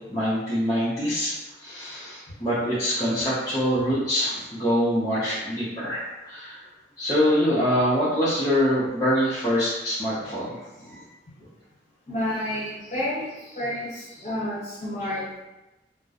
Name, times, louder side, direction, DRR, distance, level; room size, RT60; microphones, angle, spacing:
voice 1, 0.1-6.6 7.0-11.0, equal, 20° left, -12 dB, 0.5 m, -25 dB
voice 2, 12.1-15.4, left 1 dB, 35° left, -8 dB, 1.0 m, -30 dB
2.3 x 2.0 x 2.7 m, 1.0 s
head